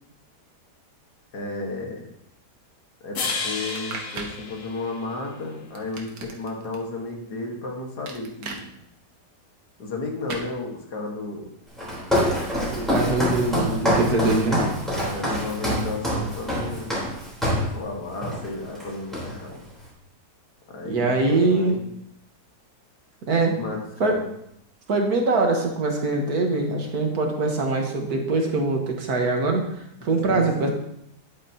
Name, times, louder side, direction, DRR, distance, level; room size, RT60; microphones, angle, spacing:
voice 1, 1.3-2.1 3.0-8.8 9.8-11.5 14.0-16.9 17.5-19.6 20.7-21.9 23.5-24.2 30.2-30.7, left 3 dB, 70° left, 0 dB, 2.2 m, -33 dB
sound 1, 3.1-5.5, left 4 dB, 55° left, 1.3 m, -32 dB
sound 2, 3.3-4.4 5.8-6.8 8.1-8.6 10.3-10.5, right 4 dB, 85° right, 1.7 m, -36 dB
Walk footsteps, 11.8-17.7 18.2-18.5 18.8-19.6, equal, ahead, 3.7 m, -25 dB
voice 2, 12.7-14.6 20.8-21.8 23.3-23.6 24.0-24.2 24.9-29.6 30.0-30.7, right 3 dB, 65° right, 1 dB, 1.9 m, -23 dB
10.5 x 8.6 x 2.9 m, 0.76 s
omnidirectional pair, 1.8 m